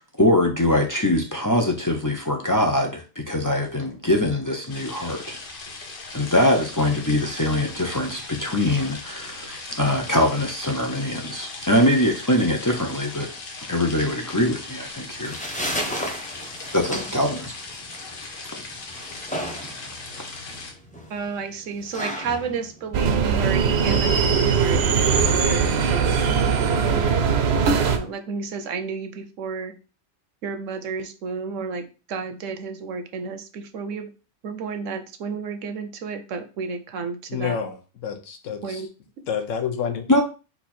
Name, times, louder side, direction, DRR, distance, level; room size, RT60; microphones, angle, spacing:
voice 1, 0.2-5.4 6.1-13.3 13.7-15.4 16.7-17.5 18.5-18.6 40.1-40.2, left 1 dB, 25° left, 0.4 m, -22 dB
sound 1, 4.7-20.7, left 3 dB, 45° left, 1.0 m, -38 dB
sound 2, 15.0-24.0, equal, 5° left, 0.9 m, -34 dB
voice 2, 21.1-25.8 27.6-29.8 30.4-34.1 34.4-37.6 38.6-38.9 39.2-39.3, right 5 dB, 80° right, 1.0 m, -31 dB
sound 3, 22.9-28.0, right 6 dB, 60° right, 0.8 m, -20 dB
voice 3, 37.3-38.8 39.3-40.0, left 7 dB, 80° left, 1.2 m, -29 dB
4.4 x 2.8 x 4.2 m
omnidirectional pair, 1.3 m